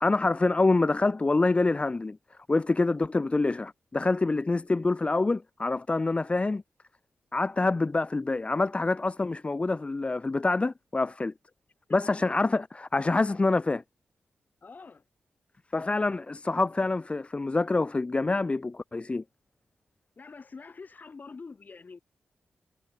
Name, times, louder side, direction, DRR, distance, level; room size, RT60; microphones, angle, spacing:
voice 1, 0.0-2.2 2.5-6.6 7.3-11.3 11.9-13.8 15.7-19.2, left 3 dB, 30° left, 0.8 m, -26 dB
voice 2, 14.6-15.0 20.2-22.0, left 4 dB, 50° left, 3.3 m, -45 dB
cardioid pair, 60°, 4 cm